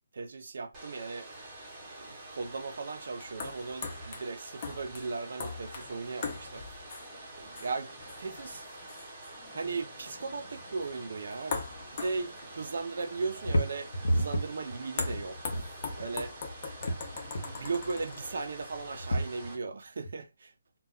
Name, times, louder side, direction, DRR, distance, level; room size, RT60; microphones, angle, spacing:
voice 1, 0.1-1.3 1.9-6.7 7.4-8.7 9.5-11.7 11.9-15.5 16.0-16.4 17.4-20.5, right 4 dB, 50° right, 0.5 m, -37 dB
Domestic sounds home sounds, 0.7-19.5, right 2 dB, 15° right, 0.7 m, -47 dB
sound 1, 1.3-19.1, left 4 dB, 25° left, 0.5 m, -43 dB
sound 2, 10.2-11.5 11.8-12.6 13.1-16.2 16.6-17.7 18.6-19.7 20.0-20.1, equal, 65° left, 0.8 m, -33 dB
2.2 x 2.1 x 3.6 m
hypercardioid pair, 175°, 0 cm